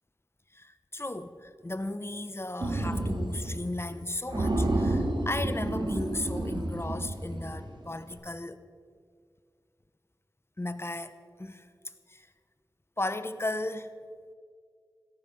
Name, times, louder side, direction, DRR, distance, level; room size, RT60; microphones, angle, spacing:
voice 1, 0.5-8.6 10.6-11.7 12.1-12.3 13.0-13.9, left 2 dB, 30° left, 12 dB, 1.0 m, -35 dB
sound 1, 2.6-3.6 3.9-4.0 4.3-7.7, right 1 dB, 60° right, 2.5 m, -30 dB
17.5 x 13.0 x 5.5 m, 2.1 s
cardioid pair, 40°, 9 cm